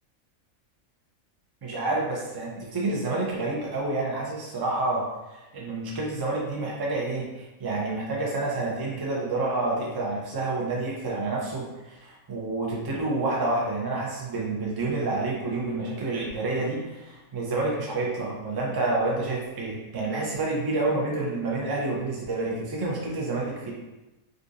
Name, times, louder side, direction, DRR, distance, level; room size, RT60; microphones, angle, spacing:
voice 1, 1.6-5.0 5.3-23.7, right 2 dB, 40° right, -3 dB, 0.3 m, -29 dB
3.6 x 2.6 x 2.5 m, 1.0 s
omnidirectional pair, 1.4 m